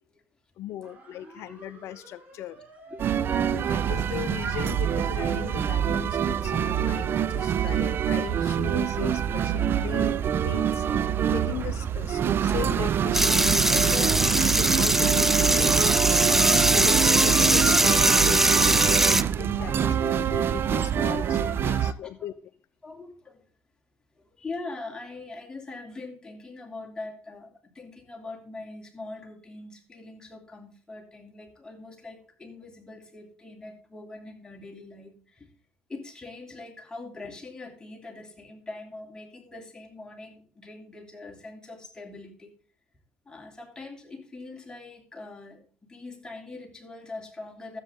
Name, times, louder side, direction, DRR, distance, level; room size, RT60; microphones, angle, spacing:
voice 1, 0.6-2.6 3.3-10.9 11.3-14.1 14.4-15.8 16.2-22.3, left 13 dB, 70° left, 15 dB, 0.6 m, -38 dB
sound 1, 0.8-8.0, right 5 dB, 30° right, 4.8 m, -47 dB
voice 2, 2.9-4.0 4.4-4.7 7.6-7.8 11.3-11.5 13.9-14.6 16.0-16.5 19.6-19.9 21.5-22.3 22.8-23.4 24.2-27.5 27.7-35.5 35.9-42.5 43.3-47.8, left 3 dB, 15° left, 2 dB, 3.0 m, -42 dB
sound 2, 3.0-21.9, right 9 dB, 50° right, 0.6 m, -25 dB
sound 3, 13.1-19.2, right 1 dB, 5° right, 0.5 m, -22 dB
13.0 x 8.2 x 3.7 m, 0.41 s
supercardioid pair, 80°, 5 cm